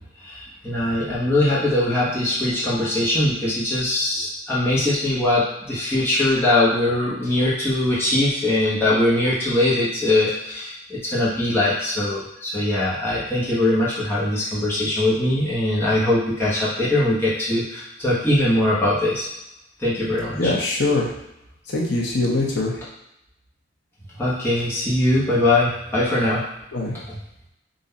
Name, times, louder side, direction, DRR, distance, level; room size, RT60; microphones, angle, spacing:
voice 1, 0.2-19.3 19.8-20.5 24.2-26.4 27.1-27.2, left 1 dB, 10° left, -9 dB, 1.1 m, -21 dB
voice 2, 20.4-21.1 21.7-22.7 26.7-26.9, left 2 dB, 60° left, -2 dB, 0.9 m, -22 dB
3.9 x 2.7 x 4.1 m, 0.84 s
head